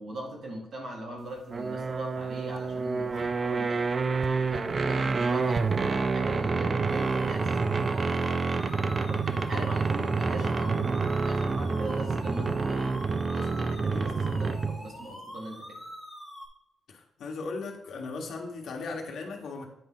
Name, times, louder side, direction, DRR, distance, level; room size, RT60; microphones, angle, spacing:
voice 1, 0.0-3.8 4.5-8.5 9.1-15.8, right 1 dB, 45° right, -1 dB, 2.1 m, -40 dB
sound 1, 1.5-14.9, right 4 dB, 25° right, 0.4 m, -28 dB
sound 2, 6.9-16.5, equal, 5° right, 2.0 m, -44 dB
voice 2, 16.9-19.7, left 3 dB, 60° left, 2 dB, 1.4 m, -37 dB
8.7 x 5.0 x 3.8 m, 0.83 s
cardioid pair, 165°, 0 cm